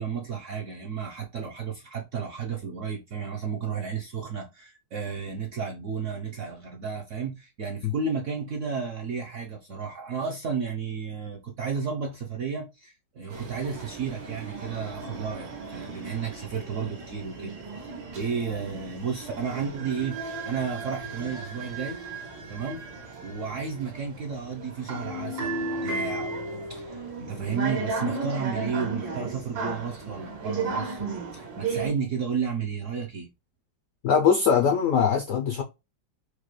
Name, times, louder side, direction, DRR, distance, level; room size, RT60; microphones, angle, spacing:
voice 1, 0.0-22.0 22.5-22.8 23.2-33.3, right 6 dB, 65° right, 0.7 m, -33 dB
sound 1, 13.3-31.9, right 3 dB, 90° right, 2.0 m, -35 dB
voice 2, 34.0-35.6, left 7 dB, 75° left, 0.7 m, -21 dB
4.7 x 2.2 x 3.0 m
omnidirectional pair, 2.0 m